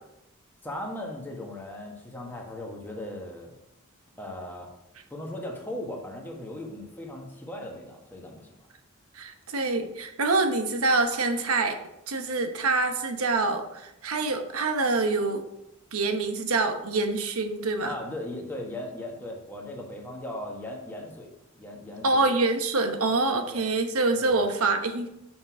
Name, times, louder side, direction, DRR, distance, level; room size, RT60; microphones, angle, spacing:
voice 1, 0.6-3.6 4.2-4.7 5.1-8.6 17.8-21.3 21.5-22.3 23.3-23.6 24.2-24.3, left 1 dB, 10° left, -1 dB, 1.5 m, -38 dB
voice 2, 9.1-11.8 12.1-15.5 15.9-17.9 22.0-25.1, right 3 dB, 85° right, 6 dB, 1.0 m, -26 dB
6.6 x 6.0 x 4.9 m, 0.87 s
head